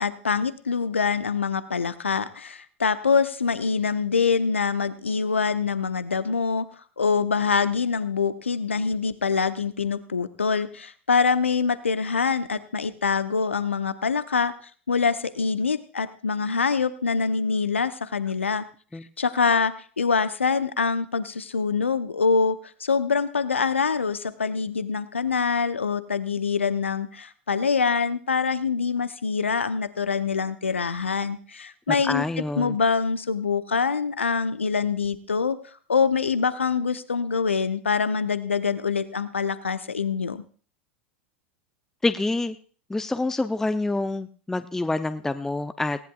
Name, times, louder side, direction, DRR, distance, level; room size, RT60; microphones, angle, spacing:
voice 1, 0.0-6.7 7.0-14.5 14.9-18.7 19.2-32.2 32.6-35.6 35.9-40.4, left 5 dB, 80° left, 13 dB, 0.7 m, -25 dB
voice 2, 31.9-32.8 42.0-42.6 42.9-46.0, left 2 dB, 5° left, 12 dB, 0.6 m, -27 dB
18.5 x 17.5 x 2.4 m, 0.42 s
figure-of-eight pair, 90°, 6 cm